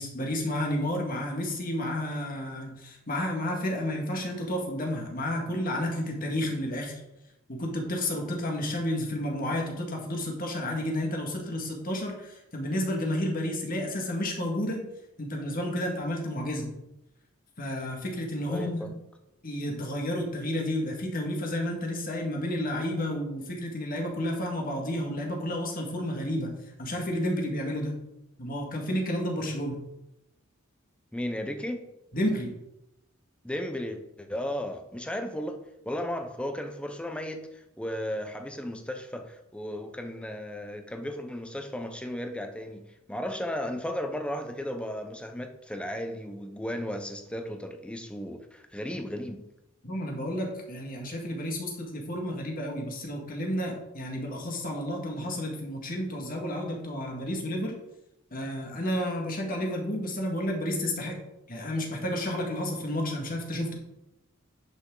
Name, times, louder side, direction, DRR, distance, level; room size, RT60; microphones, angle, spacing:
voice 1, 0.0-7.0 7.5-14.8 15.2-16.7 17.6-18.9 19.4-26.5 26.8-27.9 28.4-29.8 32.1-32.5 49.8-57.8 58.3-61.2 61.5-63.7, left 1 dB, 45° left, 0 dB, 2.0 m, -31 dB
voice 2, 18.5-18.9 31.1-31.8 33.4-35.6 35.8-37.4 37.8-42.8 43.1-49.4, left 1 dB, 5° left, 6 dB, 0.8 m, -35 dB
10.0 x 6.1 x 3.9 m, 0.88 s
head